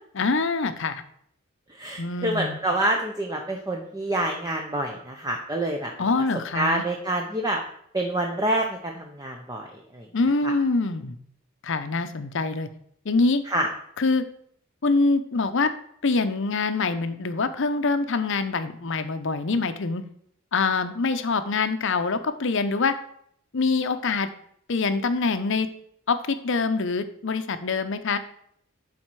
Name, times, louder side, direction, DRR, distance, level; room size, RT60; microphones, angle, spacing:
voice 1, 0.1-1.0 2.0-2.6 6.0-6.8 10.1-11.1 11.6-12.7 13.0-13.4 14.0-14.2 14.8-15.7 16.0-20.0 20.5-23.0 23.5-24.3 24.7-25.7 26.1-28.2, left 3 dB, 65° left, 10 dB, 0.7 m, -24 dB
voice 2, 1.8-5.9 6.5-7.6 7.9-9.7 9.9-10.1 10.4-10.5 13.5-13.7, right 1 dB, 20° right, 2 dB, 0.8 m, -27 dB
11.5 x 4.3 x 4.7 m, 0.68 s
head